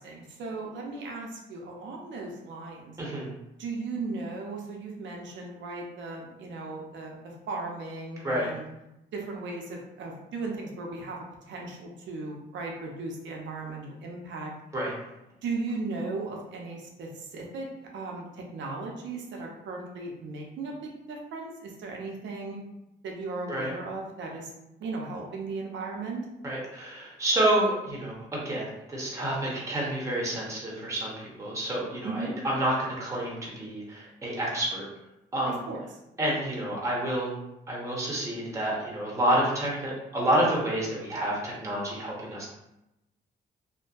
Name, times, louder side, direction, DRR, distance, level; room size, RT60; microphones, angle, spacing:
voice 1, 0.0-3.0 3.6-7.1 7.5-8.6 9.1-14.5 15.4-17.7 17.9-22.6 23.0-24.5 24.8-26.3 32.0-32.3 35.5-35.8, right 3 dB, 70° right, 0 dB, 0.6 m, -36 dB
voice 2, 3.0-3.3 8.2-8.5 14.7-14.9 23.5-23.7 26.4-34.9 35.3-35.5 36.2-37.4 37.7-42.5, right 1 dB, 15° right, -4 dB, 0.8 m, -29 dB
2.6 x 2.1 x 2.4 m, 0.89 s
cardioid pair, 90°, 20 cm